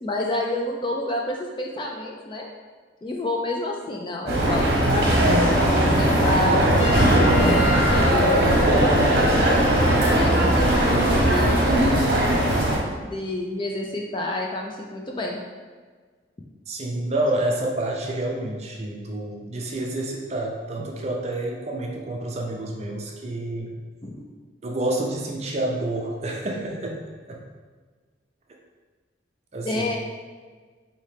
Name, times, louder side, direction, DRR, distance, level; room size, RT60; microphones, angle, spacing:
voice 1, 0.0-2.5 3.0-9.7 10.1-12.5 13.0-15.4 20.8-20.9 24.0-24.2 29.6-30.0, left 1 dB, 25° left, 0 dB, 0.3 m, -29 dB
sound 1, 4.3-12.8, right 1 dB, 50° right, 0.9 m, -19 dB
Trumpet, 6.8-9.5, left 4 dB, 65° left, 1.4 m, -33 dB
voice 2, 16.7-23.7 24.6-27.0 27.3-27.4 29.5-30.0, right 1 dB, 35° right, 0 dB, 0.5 m, -28 dB
4.3 x 2.8 x 3.3 m, 1.5 s
head